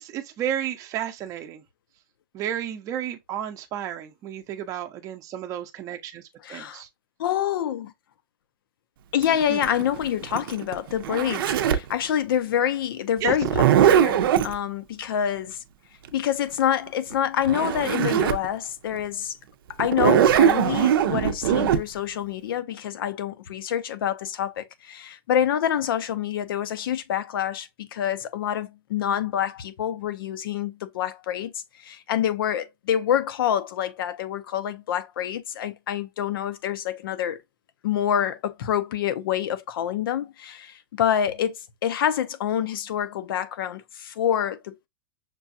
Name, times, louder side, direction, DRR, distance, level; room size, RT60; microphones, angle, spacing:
voice 1, 0.0-1.6 2.3-6.2 6.5-6.9 9.5-9.6 13.2-13.3, right 10 dB, 25° right, 0.6 m, -32 dB
voice 2, 6.4-6.8 7.2-7.9 9.1-15.6 16.1-19.3 19.8-37.4 37.8-44.9, left 10 dB, 75° left, 0.6 m, -27 dB
Zipper (clothing), 9.2-11.9 13.3-14.5 17.1-17.2 17.4-18.5 18.9-19.0 19.8-21.8, right 9 dB, 75° right, 0.6 m, -20 dB
6.0 x 2.3 x 2.6 m
supercardioid pair, 145°, 12 cm